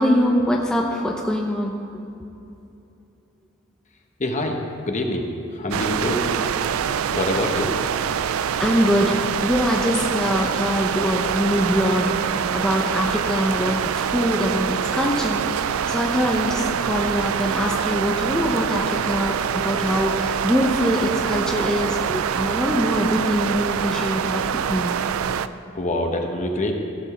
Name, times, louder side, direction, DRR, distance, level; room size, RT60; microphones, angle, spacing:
voice 1, 0.0-1.7 8.6-12.1 12.5-24.9, equal, 5° left, -1 dB, 0.7 m, -23 dB
voice 2, 4.2-6.2 6.8-7.7 25.7-26.7, left 1 dB, 35° left, 3 dB, 1.1 m, -25 dB
sound 1, 5.7-25.5, right 8 dB, 80° right, 0.4 m, -25 dB
16.0 x 5.4 x 6.7 m, 2.7 s
head